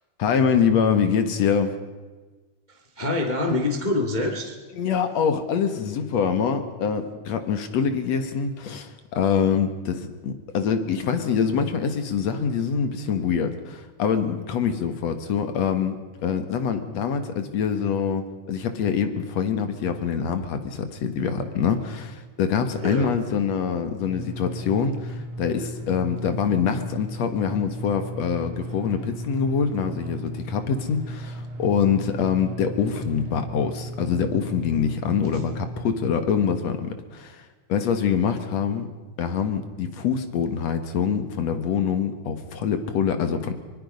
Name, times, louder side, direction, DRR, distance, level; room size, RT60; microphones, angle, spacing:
voice 1, 0.2-1.8 4.8-16.0 16.2-37.4 37.7-38.9 39.2-43.5, left 7 dB, 65° left, 8 dB, 2.5 m, -25 dB
voice 2, 2.7-4.6 22.8-23.2, left 2 dB, 20° left, 2 dB, 1.5 m, -26 dB
sound 1, 24.0-35.9, right 1 dB, 70° right, 3.2 m, -36 dB
24.5 x 21.0 x 5.4 m, 1.3 s
omnidirectional pair, 3.5 m